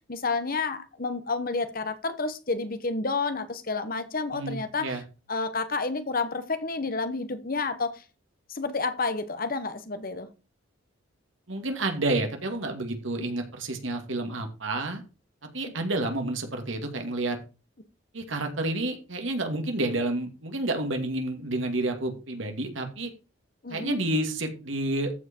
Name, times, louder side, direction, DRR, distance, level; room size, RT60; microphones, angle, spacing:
voice 1, 0.1-5.0 5.3-8.0 8.5-10.3 23.6-24.0, left 3 dB, 45° left, 1.2 m, -30 dB
voice 2, 4.3-5.0 11.5-15.0 15.5-17.4 18.1-23.1 23.7-25.1, right 2 dB, 70° right, 2.3 m, -30 dB
14.0 x 5.0 x 4.5 m
head